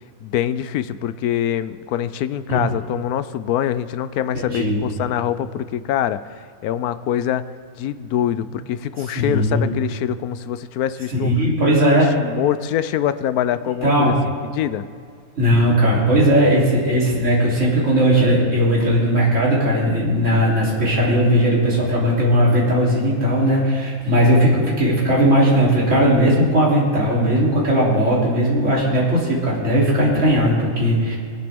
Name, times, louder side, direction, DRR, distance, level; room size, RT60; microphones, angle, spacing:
voice 1, 0.2-7.4 7.8-11.3 11.6-14.1 14.5-14.9, left 10 dB, 90° left, 14 dB, 1.1 m, -24 dB
voice 2, 4.3-4.8 9.2-9.7 11.2-12.1 13.8-14.2 15.4-31.2, equal, 55° right, -6 dB, 3.7 m, -17 dB
21.0 x 10.0 x 3.6 m, 2.1 s
omnidirectional pair, 1.5 m